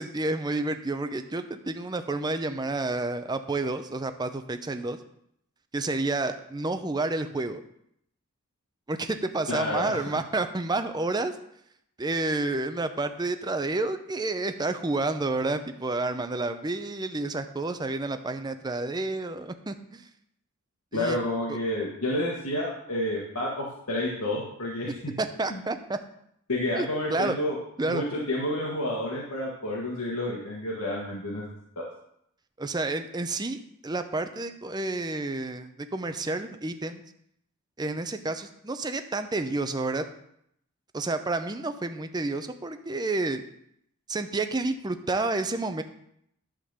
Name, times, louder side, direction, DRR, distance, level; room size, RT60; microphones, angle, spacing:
voice 1, 0.0-5.0 5.7-7.6 8.9-11.3 12.0-20.1 20.9-21.2 21.5-21.6 25.2-26.0 26.8-27.4 27.8-28.0 32.6-37.0 37.8-40.0 40.9-43.4 44.1-45.8, right 2 dB, 20° right, 9 dB, 0.5 m, -30 dB
voice 2, 9.5-10.0 20.9-25.1 25.5-25.6 26.5-27.6 27.8-31.4 31.7-31.9, left 1 dB, 85° left, -4 dB, 1.5 m, -30 dB
11.5 x 3.8 x 6.6 m, 0.73 s
head